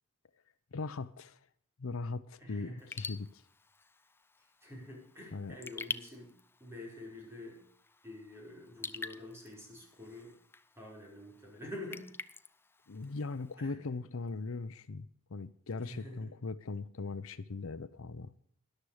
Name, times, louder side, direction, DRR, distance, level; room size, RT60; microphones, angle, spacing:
voice 1, 0.7-1.4 1.8-3.4 5.3-5.5 12.9-18.3, left 3 dB, 70° left, 0.6 m, -39 dB
voice 2, 2.4-2.9 4.6-6.3 6.6-7.6 8.0-10.3 10.8-12.1 13.6-13.8 15.8-16.3, left 1 dB, 10° right, 5.2 m, -47 dB
Raindrop / Drip, 2.8-13.5, left 3 dB, 10° left, 0.4 m, -48 dB
13.5 x 11.5 x 4.9 m
head